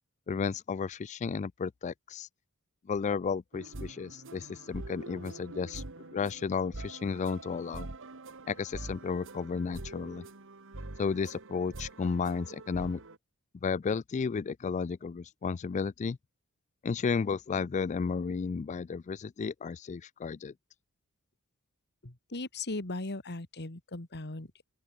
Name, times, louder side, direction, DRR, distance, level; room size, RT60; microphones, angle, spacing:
voice 1, 0.3-2.3 2.9-5.8 6.1-7.9 8.5-10.2 11.0-13.0 13.6-16.2 16.8-20.5, left 5 dB, 30° left, 0.3 m, -33 dB
sound 1, 3.5-13.2, right 2 dB, 60° right, 2.0 m, -45 dB
voice 2, 22.0-24.6, left 2 dB, 50° left, 2.1 m, -38 dB
open air
head